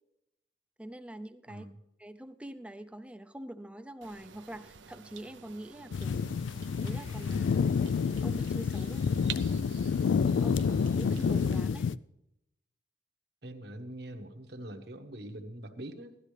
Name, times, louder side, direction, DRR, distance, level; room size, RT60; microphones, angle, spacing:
voice 1, 0.8-1.7 2.0-6.2 6.8-7.7 8.2-9.0 10.4-10.7 10.9-11.9, right 1 dB, 5° right, 10 dB, 0.5 m, -44 dB
sound 1, 4.0-11.6, right 8 dB, 80° right, 0.7 m, -48 dB
sound 2, 5.9-12.0, left 6 dB, 85° left, 0.3 m, -29 dB
voice 2, 13.4-16.2, right 1 dB, 60° right, 5 dB, 1.2 m, -44 dB
16.5 x 12.5 x 3.3 m, 0.86 s
head